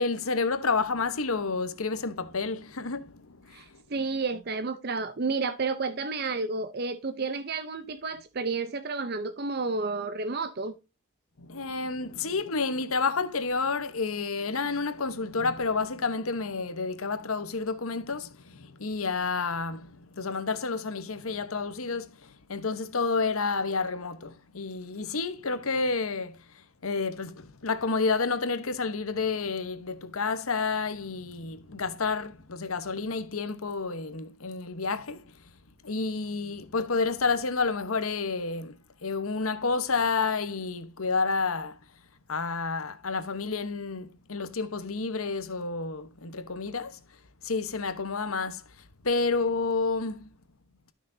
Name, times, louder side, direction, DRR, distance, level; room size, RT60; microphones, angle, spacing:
voice 1, 0.0-3.8 11.4-35.3 35.8-41.8 42.3-47.0 47.4-48.6 49.0-50.3, left 4 dB, 85° left, 1.0 m, -30 dB
voice 2, 3.5-10.7, right 4 dB, 50° right, 0.6 m, -31 dB
13.0 x 6.1 x 2.7 m
head